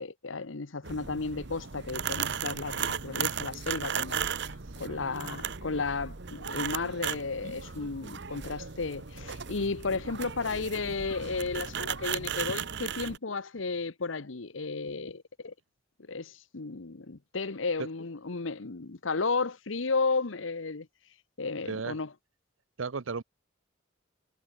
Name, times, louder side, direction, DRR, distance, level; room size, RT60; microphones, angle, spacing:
voice 1, 0.0-4.2 4.8-15.5 16.1-20.9 21.4-22.1, left 4 dB, 75° left, 1.0 m, -33 dB
sound 1, 0.8-13.2, right 7 dB, 60° right, 1.2 m, -36 dB
voice 2, 4.8-5.4 17.8-17.9 21.6-22.0 22.8-23.2, right 4 dB, 80° right, 0.7 m, -36 dB
head